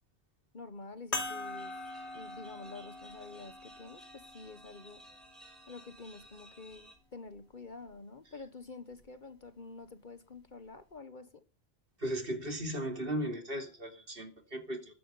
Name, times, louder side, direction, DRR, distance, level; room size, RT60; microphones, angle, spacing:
voice 1, 0.5-1.7 2.1-5.0 5.7-11.4, left 3 dB, 45° left, 1.3 m, -48 dB
sound 1, 1.1-5.9 6.7-6.8 8.9-9.1, left 2 dB, 75° left, 3.0 m, -43 dB
sound 2, 1.5-7.0, right 1 dB, ahead, 5.3 m, -56 dB
voice 2, 12.0-14.9, right 1 dB, 55° right, 3.0 m, -36 dB
14.5 x 13.5 x 5.6 m
omnidirectional pair, 1.1 m